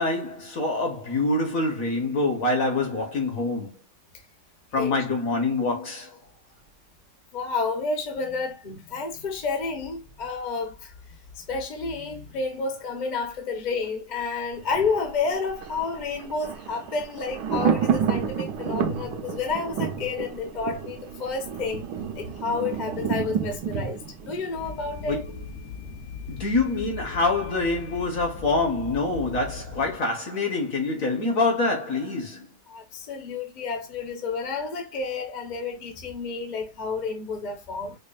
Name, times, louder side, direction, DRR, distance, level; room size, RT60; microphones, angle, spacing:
voice 1, 0.0-3.7 4.7-6.2 25.1-25.3 26.3-32.5, left 2 dB, 55° left, 1.2 m, -25 dB
voice 2, 7.3-10.9 11.4-21.9 22.2-25.2 32.7-37.9, left 4 dB, 35° left, 0.7 m, -30 dB
Thunder, 14.5-25.5 25.8-25.9, right 7 dB, 70° right, 1.1 m, -30 dB
sound 1, 24.5-30.0, left 5 dB, 75° left, 1.2 m, -39 dB
5.1 x 2.3 x 2.3 m
omnidirectional pair, 2.0 m